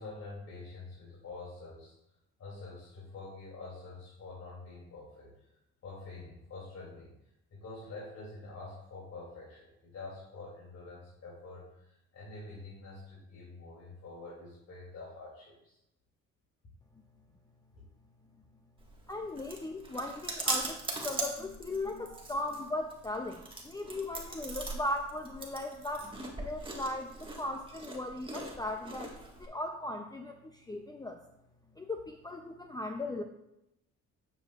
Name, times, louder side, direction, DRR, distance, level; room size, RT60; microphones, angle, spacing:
voice 1, 0.0-1.9 2.4-5.3 5.8-7.1 7.5-15.8 22.0-22.1, left 3 dB, 60° left, -6 dB, 2.9 m, -46 dB
Chewing mastication, 18.8-29.5, right 2 dB, 15° right, 1.6 m, -40 dB
voice 2, 19.1-31.2 31.7-33.2, left 1 dB, 15° left, 4 dB, 0.6 m, -38 dB
9.0 x 7.6 x 2.4 m, 0.84 s
cardioid pair, 90°, 30 cm